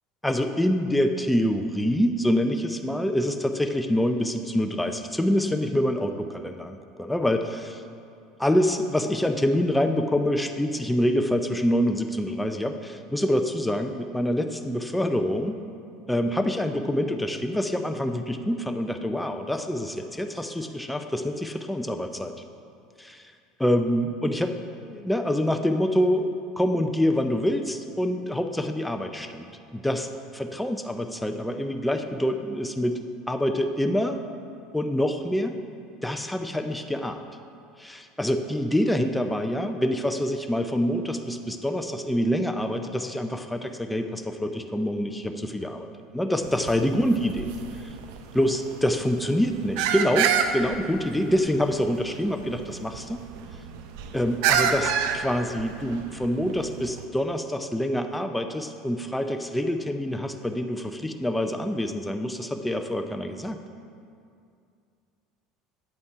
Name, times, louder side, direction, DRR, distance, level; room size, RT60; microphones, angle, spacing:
voice 1, 0.2-7.8 8.4-15.6 16.1-22.3 23.0-23.2 23.6-24.5 24.8-26.3 26.6-33.0 33.3-34.2 34.7-35.5 36.0-37.2 37.8-47.9 48.3-53.2 54.1-63.6, equal, 5° left, 5 dB, 0.4 m, -26 dB
sound 1, 46.4-57.0, right 7 dB, 75° right, 0.5 m, -29 dB
8.0 x 5.3 x 4.7 m, 2.4 s
supercardioid pair, 95°, 0 cm